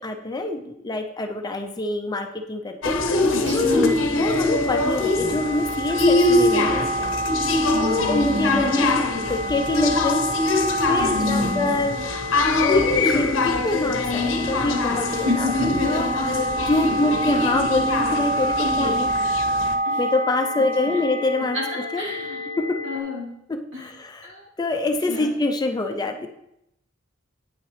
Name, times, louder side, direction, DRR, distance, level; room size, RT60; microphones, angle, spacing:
voice 1, 0.0-3.2 3.5-7.2 8.1-9.0 9.3-10.2 10.5-12.1 12.6-15.5 15.8-19.1 20.0-21.6 21.9-22.0 22.6-22.8 23.5-24.3 24.6-26.3, left 2 dB, 20° left, 5 dB, 0.5 m, -25 dB
sound 1, 2.8-19.8, left 2 dB, 90° left, 0.7 m, -23 dB
voice 2, 3.3-4.0 7.7-8.8 11.0-11.8 15.1-16.1 19.8-20.0 21.5-21.6 22.0-22.4 22.8-23.3 23.7-23.8 24.2-24.4 25.1-25.3, left 2 dB, 75° right, -5 dB, 2.9 m, -29 dB
sound 2, 3.9-23.0, right 1 dB, 40° right, 0.6 m, -28 dB
8.9 x 5.7 x 3.2 m, 0.81 s
head